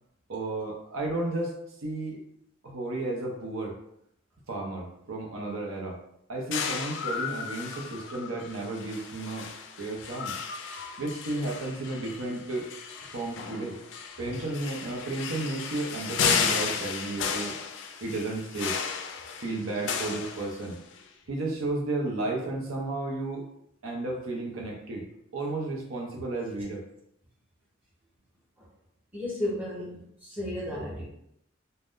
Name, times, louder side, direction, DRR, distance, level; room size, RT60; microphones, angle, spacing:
voice 1, 0.3-1.5 1.8-2.2 2.6-3.8 4.5-6.0 6.3-9.5 9.8-10.4 11.0-12.6 13.1-13.8 14.2-17.6 18.0-18.8 19.4-20.8 21.3-23.5 23.8-25.0 25.3-26.8, right 2 dB, 85° right, 0 dB, 0.7 m, -33 dB
sound 1, 6.5-21.0, left 6 dB, 60° left, 0.3 m, -34 dB
voice 2, 29.1-31.0, left 1 dB, 10° right, -8 dB, 0.9 m, -34 dB
2.5 x 2.1 x 3.6 m, 0.75 s
head